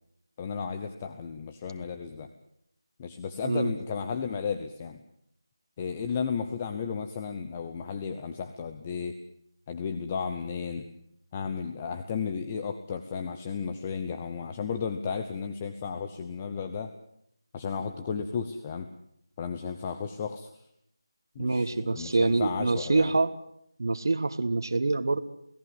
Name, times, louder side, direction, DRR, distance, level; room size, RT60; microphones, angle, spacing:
voice 1, 0.4-2.3 3.0-5.0 5.8-9.2 9.7-10.9 11.3-16.9 17.5-18.9 19.4-20.5 21.3-23.1, left 6 dB, 15° left, 7 dB, 0.9 m, -34 dB
voice 2, 21.4-23.3 23.8-25.2, right 3 dB, 50° right, 9 dB, 1.5 m, -25 dB
29.0 x 17.5 x 7.9 m, 0.73 s
figure-of-eight pair, 175°, 2 cm